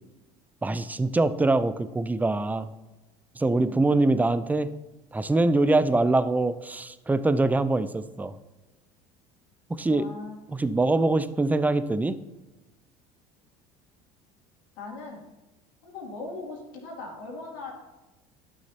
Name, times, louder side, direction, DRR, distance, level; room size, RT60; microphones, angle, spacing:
voice 1, 0.6-2.7 3.4-4.7 5.1-8.3 9.7-10.1 10.5-12.2, right 2 dB, 10° right, 13 dB, 0.5 m, -24 dB
voice 2, 9.8-10.4 14.8-15.2 15.8-17.7, left 3 dB, 80° left, -3 dB, 2.7 m, -40 dB
11.5 x 6.4 x 2.9 m, 1.1 s
hypercardioid pair, 85°, 19 cm